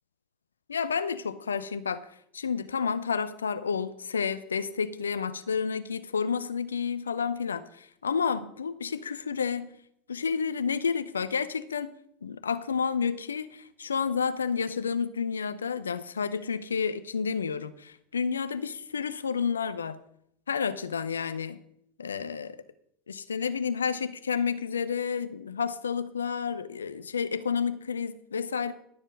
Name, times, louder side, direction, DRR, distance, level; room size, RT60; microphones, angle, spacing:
voice 1, 0.7-2.1 2.3-9.7 10.1-11.9 12.2-20.0 20.5-21.6 22.0-22.6 23.1-28.7, left 6 dB, 80° left, 14 dB, 0.6 m, -30 dB
12.0 x 7.2 x 5.3 m, 0.73 s
figure-of-eight pair, 80°, 0 cm